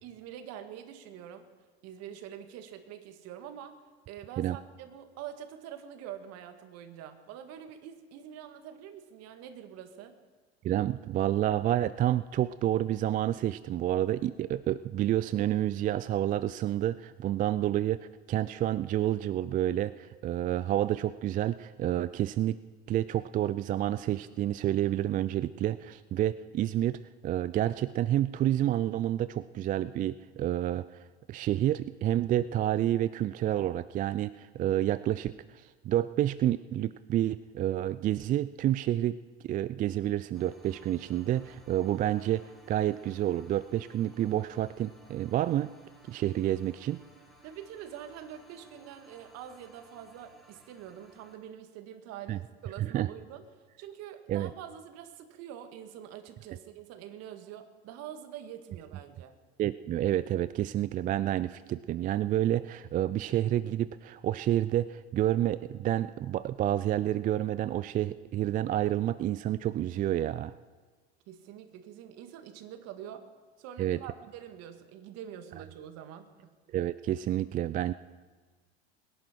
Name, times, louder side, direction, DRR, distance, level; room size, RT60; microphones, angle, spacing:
voice 1, 0.0-1.5 1.8-3.8 4.1-10.2 47.4-53.5 53.8-59.3 71.3-73.3 73.6-76.6, right 10 dB, 50° right, 8 dB, 1.9 m, -45 dB
voice 2, 10.6-22.6 22.9-31.0 31.3-39.2 39.4-45.7 46.1-47.0 52.3-52.4 52.8-53.1 54.3-54.5 59.6-70.5 73.8-74.0 76.7-77.9, right 12 dB, 25° right, 16 dB, 0.3 m, -29 dB
sound 1, 40.3-51.4, right 2 dB, ahead, 3.7 m, -58 dB
22.0 x 10.5 x 4.5 m, 1.4 s
hypercardioid pair, 85°, 32 cm